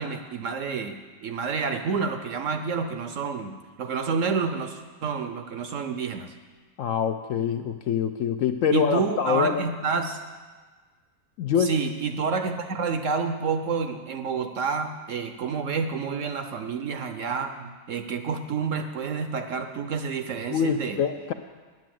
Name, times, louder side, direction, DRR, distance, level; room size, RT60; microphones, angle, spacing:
voice 1, 0.0-6.3 8.7-10.2 11.6-21.0, right 5 dB, 65° right, 7 dB, 0.8 m, -29 dB
voice 2, 6.8-9.6 11.4-11.7 20.5-21.3, left 7 dB, 70° left, 7 dB, 0.8 m, -25 dB
9.4 x 9.2 x 7.6 m, 1.4 s
omnidirectional pair, 1.7 m